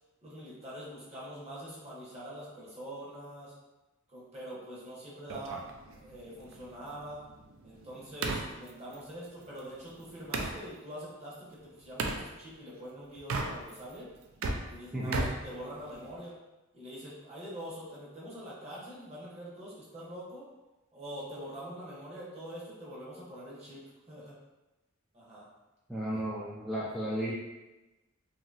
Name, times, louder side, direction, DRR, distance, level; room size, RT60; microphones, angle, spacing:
voice 1, 0.2-3.5 4.1-5.6 6.0-7.2 7.6-14.1 14.6-16.4 16.7-20.4 20.9-23.8 24.1-24.3 25.1-25.5 26.1-26.2, equal, 30° right, -7 dB, 0.9 m, -44 dB
sound 1, 5.3-10.6 12.0-12.2 13.2-13.9 14.2-16.2, right 3 dB, 70° right, 0.4 m, -37 dB
voice 2, 14.9-15.3 25.9-27.3, right 1 dB, ahead, -9 dB, 0.4 m, -33 dB
2.8 x 2.7 x 2.4 m, 1.0 s
head